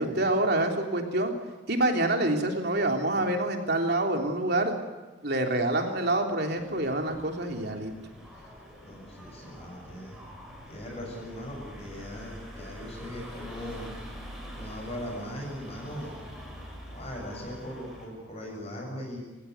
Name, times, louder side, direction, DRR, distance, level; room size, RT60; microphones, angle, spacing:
voice 1, 0.0-1.3 1.7-4.7 5.2-7.9, right 1 dB, 55° right, 3 dB, 3.4 m, -26 dB
sound 1, 6.5-18.1, equal, ahead, 6.8 m, -45 dB
voice 2, 8.8-10.2 10.7-13.9 14.5-16.2 16.9-19.2, equal, 30° left, 0 dB, 6.9 m, -39 dB
27.0 x 16.5 x 9.4 m, 1.2 s
head